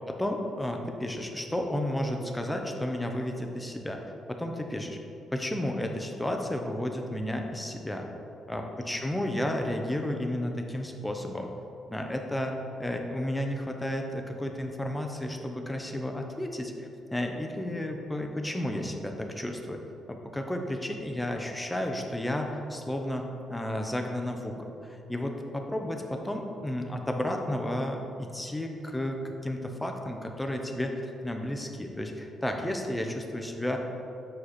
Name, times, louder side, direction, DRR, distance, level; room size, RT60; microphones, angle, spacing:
voice 1, 0.1-4.0 4.3-5.0 5.3-8.1 8.5-11.5 11.9-19.8 20.1-33.8, left 1 dB, 10° left, 3 dB, 0.7 m, -32 dB
6.5 x 4.7 x 4.3 m, 2.8 s
cardioid pair, 90°, 0 cm